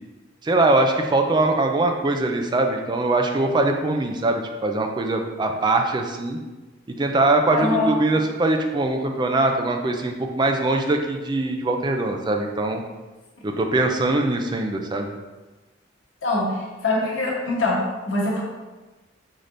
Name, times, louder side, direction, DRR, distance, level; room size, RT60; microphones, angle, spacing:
voice 1, 0.4-6.4 6.9-12.8 13.4-15.1, right 2 dB, 25° right, 4 dB, 0.4 m, -22 dB
voice 2, 7.5-8.0 16.2-18.4, left 2 dB, 80° left, -4 dB, 1.1 m, -23 dB
5.6 x 3.3 x 2.5 m, 1.2 s
head